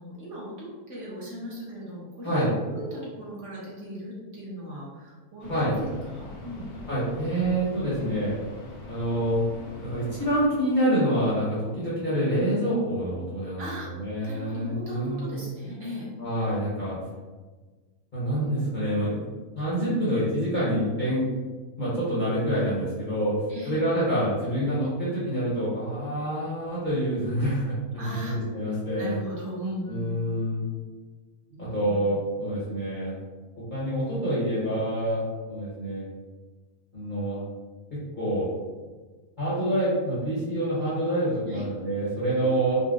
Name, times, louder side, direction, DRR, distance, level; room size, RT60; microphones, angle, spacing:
voice 1, 0.0-5.7 6.1-6.7 13.6-13.9 14.2-16.1 23.5-23.8 28.0-28.6 29.0-30.4 31.5-32.2 41.5-41.6 42.4-42.7, equal, 55° right, -6 dB, 1.3 m, -38 dB
sound 1, 5.4-10.5, left 1 dB, 80° left, 1.3 m, -43 dB
voice 2, 6.9-8.4 8.9-9.4 9.8-13.6 14.0-15.3 16.2-17.0 18.1-19.2 19.6-21.3 21.8-23.3 23.7-28.2 28.5-29.1 29.9-30.6 31.6-33.2 33.7-36.0 36.9-37.4 37.9-38.5 39.4-42.8, right 1 dB, 40° left, -11 dB, 0.8 m, -27 dB
3.9 x 2.1 x 2.4 m, 1.4 s
omnidirectional pair, 1.6 m